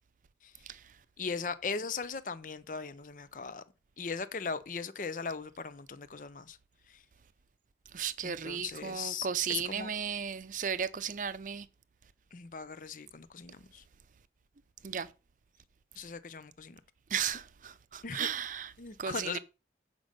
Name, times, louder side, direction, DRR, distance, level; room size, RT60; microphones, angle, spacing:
voice 1, 1.2-3.6 4.0-6.6 8.2-9.9 12.3-13.8 16.0-16.8 18.0-18.3 18.8-19.4, left 5 dB, 45° left, 0.6 m, -39 dB
voice 2, 7.9-11.7 14.8-15.1 17.1-18.7 19.0-19.4, right 7 dB, 45° right, 0.5 m, -35 dB
8.0 x 5.3 x 5.0 m
head